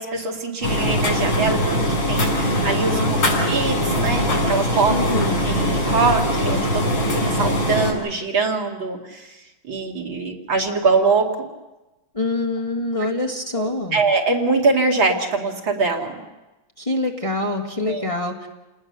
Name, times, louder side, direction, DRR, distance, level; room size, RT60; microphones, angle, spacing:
voice 1, 0.0-3.0 3.5-4.9 5.4-9.3 9.6-11.5 13.6-16.2 17.9-18.1, right 4 dB, 70° right, 1 dB, 3.1 m, -23 dB
sound 1, 0.6-7.9, equal, 80° left, 6.2 m, -21 dB
voice 2, 2.9-3.3 4.9-5.4 12.1-14.0 16.8-18.5, left 2 dB, 15° left, 1 dB, 1.6 m, -25 dB
29.0 x 19.5 x 6.7 m, 1.1 s
omnidirectional pair, 2.2 m